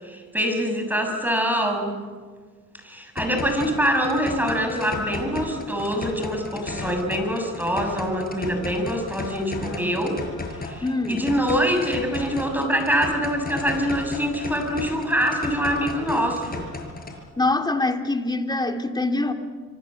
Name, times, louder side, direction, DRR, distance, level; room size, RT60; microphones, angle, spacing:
voice 1, 0.0-2.0 2.8-10.2 10.6-16.6, equal, 5° right, 7.0 m, -24 dB
sound 1, 3.2-17.2, left 3 dB, 30° left, 6.3 m, -35 dB
voice 2, 10.8-11.3 17.4-19.3, left 2 dB, 15° left, 2.7 m, -24 dB
25.5 x 25.0 x 7.7 m
cardioid pair, 90°, 30 cm